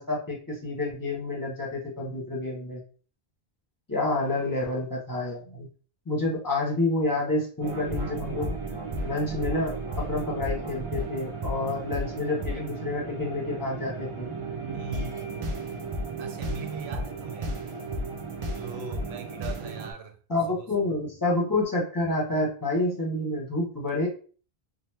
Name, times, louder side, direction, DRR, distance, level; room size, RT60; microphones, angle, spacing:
voice 1, 0.0-2.8 3.9-5.7 6.1-8.6 9.0-14.3 20.3-24.1, left 2 dB, 20° left, 0.9 m, -28 dB
sound 1, 7.6-19.9, right 2 dB, 45° right, 0.4 m, -34 dB
voice 2, 14.7-15.5 16.2-17.5 18.5-20.2 20.6-21.0, right 5 dB, 80° right, 0.8 m, -40 dB
2.9 x 2.0 x 3.3 m
omnidirectional pair, 1.1 m